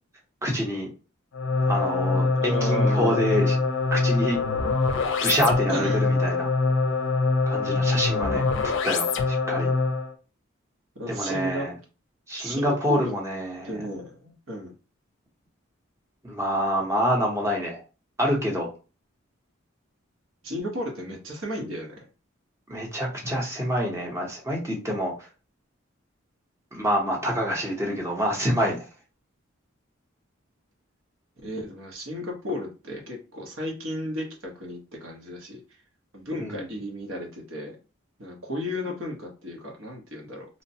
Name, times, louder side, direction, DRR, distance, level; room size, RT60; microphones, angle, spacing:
voice 1, 0.4-0.9 1.7-3.6 3.9-4.4 5.2-6.5 7.5-8.5 8.8-9.7 11.1-11.7 12.3-13.8 16.2-17.8 18.2-18.7 22.7-25.1 26.7-28.8 36.4-36.7, equal, 15° right, -1 dB, 0.7 m, -26 dB
sound 1, 1.3-10.1, left 3 dB, 60° left, 0.4 m, -24 dB
voice 2, 2.3-3.2 5.7-6.0 11.0-11.7 12.4-13.1 13.6-14.7 20.4-22.1 31.4-35.6 36.1-37.8 38.2-40.5, equal, 75° right, 1 dB, 1.0 m, -33 dB
3.0 x 2.1 x 2.7 m, 0.33 s
head